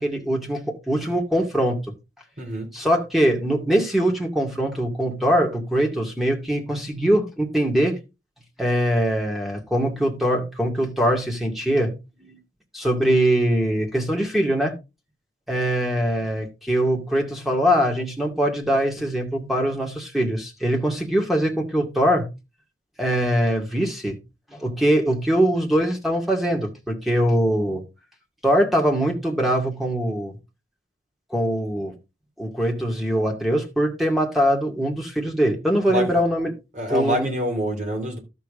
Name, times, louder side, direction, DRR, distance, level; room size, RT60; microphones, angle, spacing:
voice 1, 0.0-1.8 2.7-8.0 8.6-11.9 12.2-12.4 12.7-14.7 15.5-22.3 23.0-24.2 24.5-27.8 28.4-30.3 31.3-31.9 32.4-36.5 36.9-37.3, equal, ahead, 2.2 m, -22 dB
voice 2, 2.4-2.7 35.9-36.2 36.7-38.2, equal, 40° right, 3.1 m, -26 dB
12.0 x 6.9 x 3.7 m
head